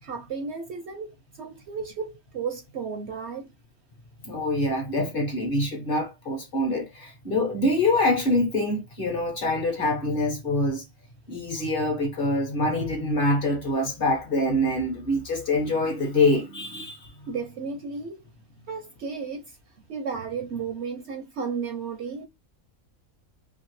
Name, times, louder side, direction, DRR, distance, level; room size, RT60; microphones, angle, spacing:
voice 1, 0.0-3.5 17.3-18.2 18.7-19.6 19.9-22.3, right 5 dB, 65° right, 0.7 m, -33 dB
voice 2, 4.2-10.8 11.3-17.1, left 1 dB, 45° left, 0.9 m, -25 dB
2.9 x 2.8 x 3.0 m
omnidirectional pair, 1.5 m